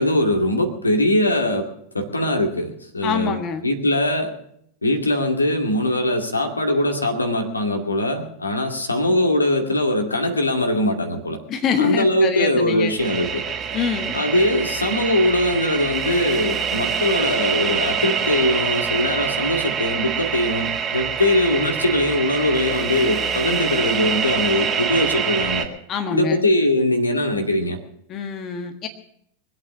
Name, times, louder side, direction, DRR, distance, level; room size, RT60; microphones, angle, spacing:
voice 1, 0.0-1.7 1.9-3.4 3.6-4.3 4.8-11.4 11.8-13.4 14.1-25.7 26.1-27.8, left 1 dB, 80° left, 4 dB, 2.2 m, -21 dB
voice 2, 3.0-3.6 11.5-12.9 13.7-14.1 25.9-26.4 28.1-28.9, left 7 dB, 30° left, 6 dB, 1.5 m, -25 dB
sound 1, 13.0-25.7, right 7 dB, 25° right, 2.1 m, -25 dB
23.0 x 8.5 x 7.2 m, 0.71 s
figure-of-eight pair, 90°, 0 cm